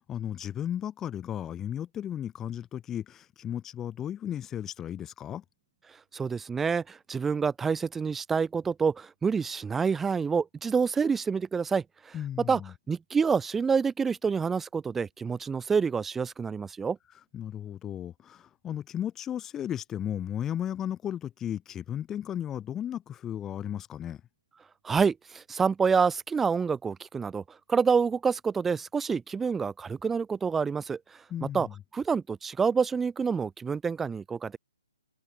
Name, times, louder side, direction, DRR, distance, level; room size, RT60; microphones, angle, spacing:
voice 1, 0.1-5.4 12.1-12.7 17.3-24.2 31.3-31.7, left 10 dB, 15° left, 2.7 m, -35 dB
voice 2, 6.1-12.1 12.5-12.6 12.9-17.0 24.8-27.4 27.7-31.0 31.5-31.7 31.9-34.6, right 5 dB, 10° right, 0.9 m, -27 dB
figure-of-eight pair, 135°, 3 cm